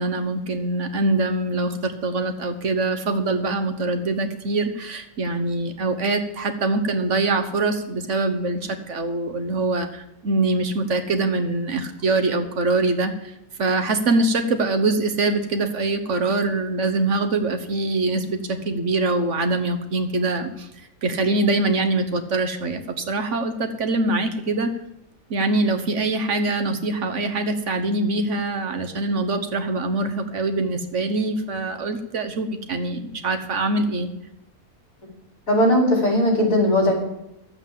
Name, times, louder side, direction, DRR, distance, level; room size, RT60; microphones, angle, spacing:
voice 1, 0.0-13.3 13.6-20.7 21.0-24.7 25.3-34.1, right 2 dB, 55° right, 7 dB, 1.4 m, -24 dB
voice 2, 35.5-36.9, left 1 dB, 60° left, -1 dB, 4.8 m, -18 dB
12.0 x 8.2 x 7.4 m, 0.85 s
omnidirectional pair, 1.6 m